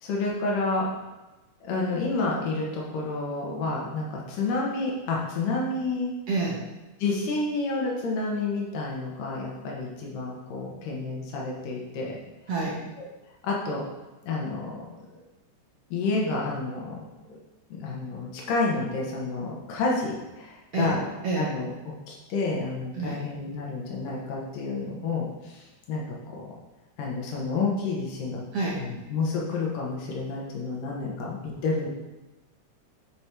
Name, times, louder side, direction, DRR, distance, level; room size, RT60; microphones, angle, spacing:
voice 1, 0.0-0.9 1.6-6.1 7.0-12.2 13.4-13.8 14.2-14.8 15.9-16.9 17.3-17.4 17.7-21.0 21.4-26.5 27.0-28.4 28.8-31.9, left 3 dB, 80° left, -3 dB, 2.9 m, -29 dB
voice 2, 6.3-6.6 12.5-12.8 20.7-20.9 21.2-21.5 23.0-23.2 28.5-28.8, right 3 dB, 65° right, -4 dB, 1.5 m, -27 dB
8.0 x 6.4 x 3.0 m, 1.1 s
omnidirectional pair, 3.8 m